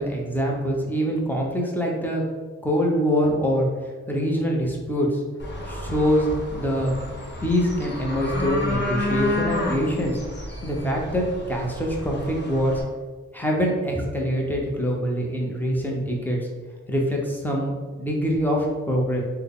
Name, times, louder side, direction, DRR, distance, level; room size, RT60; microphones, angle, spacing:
voice 1, 0.0-2.2 2.6-3.7 4.1-5.2 5.6-6.9 7.4-10.2 10.6-12.8 13.3-16.4 16.9-19.2, equal, 5° left, -2 dB, 0.9 m, -24 dB
sound 1, 5.4-12.8, left 2 dB, 35° left, 0.9 m, -31 dB
3.3 x 2.3 x 3.7 m, 1.4 s
supercardioid pair, 50°, 32 cm